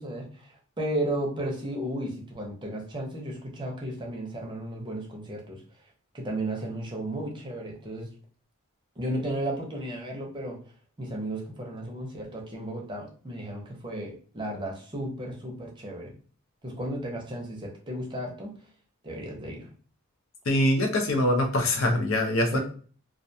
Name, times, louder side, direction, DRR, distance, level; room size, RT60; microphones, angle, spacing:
voice 1, 0.0-5.6 6.1-8.1 9.0-10.6 11.0-16.1 16.6-18.6 19.0-19.7 22.5-22.6, right 1 dB, 20° right, 0 dB, 0.6 m, -34 dB
voice 2, 20.5-22.6, left 1 dB, 65° left, 3 dB, 0.6 m, -23 dB
2.3 x 2.2 x 2.6 m, 0.42 s
head